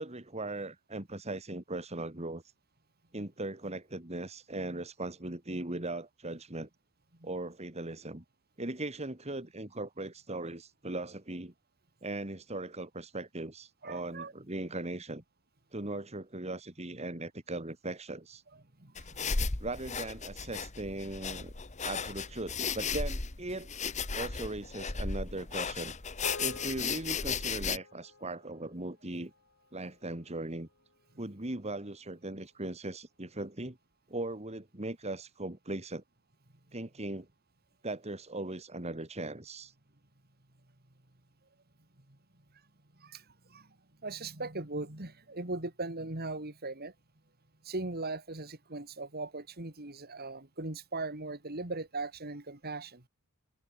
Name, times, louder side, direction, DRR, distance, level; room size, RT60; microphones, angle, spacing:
voice 1, 0.0-2.4 3.1-6.7 7.2-8.2 8.6-11.5 12.0-15.2 15.7-18.4 19.6-21.5 21.8-23.7 24.2-25.9 26.4-29.3 29.7-30.7 31.2-33.8 34.1-36.0 36.7-37.3 37.8-39.7, right 2 dB, 30° right, 2.1 m, -39 dB
voice 2, 13.8-14.3 18.5-19.5 42.1-42.2 43.0-46.9 47.6-53.0, right 2 dB, 45° right, 2.7 m, -39 dB
sound 1, 19.0-27.8, left 5 dB, 35° left, 1.2 m, -35 dB
sound 2, 26.2-30.7, left 3 dB, 60° left, 2.3 m, -50 dB
open air
head